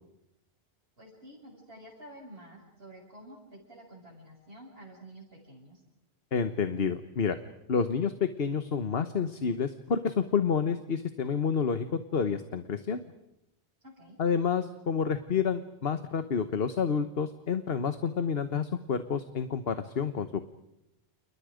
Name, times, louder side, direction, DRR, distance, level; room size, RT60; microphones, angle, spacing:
voice 1, 1.0-5.8 13.8-14.2, right 1 dB, 70° right, -6 dB, 7.0 m, -50 dB
voice 2, 6.3-7.4 7.7-11.9 12.1-13.0 14.2-20.5, left 6 dB, 70° left, 10 dB, 1.4 m, -29 dB
29.5 x 29.5 x 5.1 m, 0.85 s
omnidirectional pair, 1.1 m